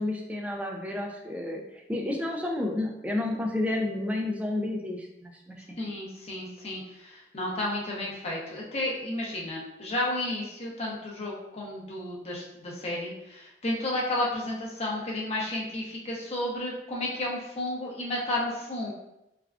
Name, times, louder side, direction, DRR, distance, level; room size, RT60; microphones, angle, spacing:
voice 1, 0.0-5.8, left 2 dB, 10° right, 1 dB, 0.3 m, -31 dB
voice 2, 5.8-18.9, left 1 dB, 35° left, -4 dB, 0.7 m, -32 dB
3.4 x 2.3 x 2.3 m, 0.89 s
head